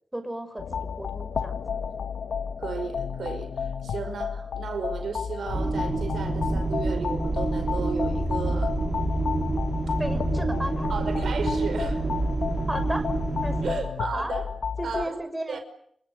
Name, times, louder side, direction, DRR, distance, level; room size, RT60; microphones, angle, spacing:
voice 1, 0.1-1.8 10.0-10.9 12.7-13.1 13.4-13.8 14.1-14.3 14.8-15.6, right 1 dB, 15° right, 7 dB, 6.5 m, -34 dB
sound 1, 0.6-15.0, left 6 dB, 85° left, 2.4 m, -32 dB
voice 2, 2.6-8.8 9.9-10.0 10.9-12.0 13.6-14.5 14.8-15.2 15.5-15.6, right 5 dB, 90° right, 7 dB, 5.3 m, -34 dB
sound 2, 5.5-13.7, right 3 dB, 55° right, 5.8 m, -28 dB
29.5 x 26.5 x 6.8 m, 0.68 s
cardioid pair, 60°, 0 cm